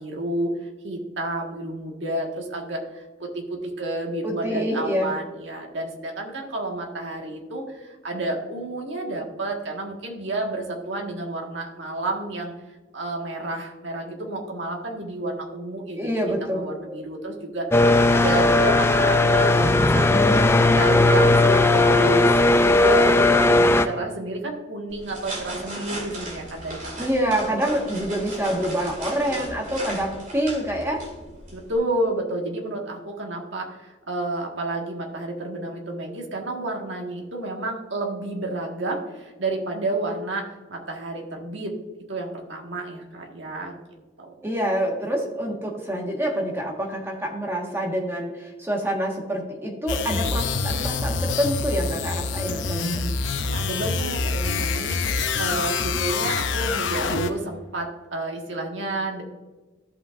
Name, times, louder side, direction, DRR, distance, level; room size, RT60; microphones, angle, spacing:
voice 1, 0.0-12.5 12.9-17.7 18.1-20.2 20.8-27.1 31.5-41.7 42.1-43.7 44.2-44.3 53.4-59.2, right 2 dB, 75° right, 1 dB, 1.6 m, -30 dB
voice 2, 4.2-5.1 16.0-17.0 27.0-31.0 44.4-53.1, equal, 15° right, 0 dB, 1.4 m, -26 dB
sound 1, 17.7-23.8, left 2 dB, 15° left, 0.4 m, -17 dB
sound 2, 24.9-31.8, right 1 dB, 40° right, 2.3 m, -36 dB
sound 3, 49.9-57.5, left 4 dB, 75° left, 0.6 m, -26 dB
14.0 x 5.7 x 2.5 m, 1.2 s
head